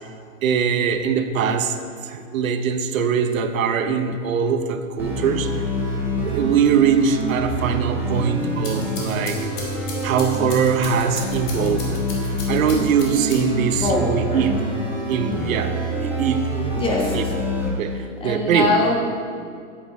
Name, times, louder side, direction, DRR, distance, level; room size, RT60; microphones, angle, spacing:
voice 1, 0.4-1.8 2.0-5.5 6.2-9.4 10.0-12.0 12.5-14.7 15.1-15.8 16.0-16.5 17.1-17.2 17.7-18.0 18.2-18.7, right 6 dB, 80° right, 8 dB, 0.8 m, -22 dB
sound 1, 5.0-17.7, right 1 dB, 5° right, 1.4 m, -26 dB
sound 2, 8.4-13.7, left 3 dB, 35° left, 1.8 m, -36 dB
voice 2, 13.7-14.5 16.8-17.3 17.9-18.9, left 2 dB, 15° left, -1 dB, 1.1 m, -23 dB
8.5 x 7.8 x 4.1 m, 2.3 s
hypercardioid pair, 150°, 40 cm